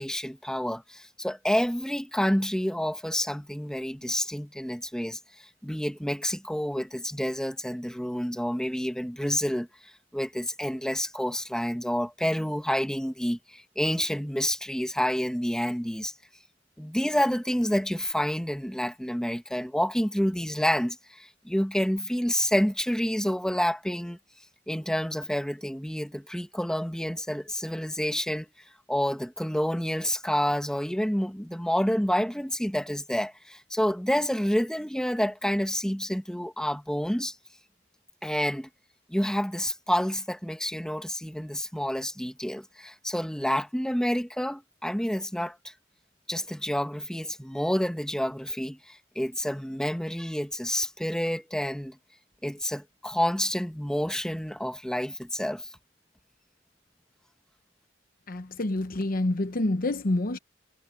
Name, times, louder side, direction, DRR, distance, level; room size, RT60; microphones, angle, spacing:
voice 1, 0.0-5.2 5.6-9.7 10.1-16.1 16.8-24.2 24.7-28.5 28.9-37.4 38.2-38.7 39.1-45.7 46.3-52.0 52.4-55.7, equal, 5° left, 1.7 m, -28 dB
voice 2, 58.3-60.4, left 2 dB, 50° left, 0.9 m, -27 dB
head